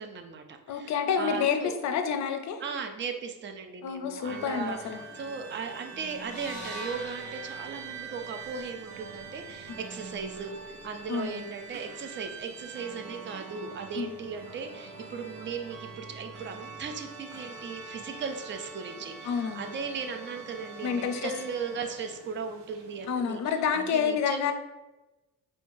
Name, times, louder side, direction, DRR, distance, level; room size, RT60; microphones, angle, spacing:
voice 1, 0.0-1.8 2.6-4.9 5.1-24.5, right 5 dB, 35° right, 6 dB, 0.4 m, -37 dB
voice 2, 0.7-2.6 3.8-5.0 11.1-11.4 13.9-14.1 19.2-19.7 20.8-21.3 23.1-24.5, left 7 dB, 55° left, 7 dB, 0.4 m, -29 dB
Tokyo - Ueno Park Organ, 4.2-23.7, right 4 dB, 90° right, 0.6 m, -44 dB
sound 1, 6.2-10.4, equal, 20° left, 0.8 m, -45 dB
4.5 x 2.3 x 2.5 m, 1.1 s
cardioid pair, 130°, 34 cm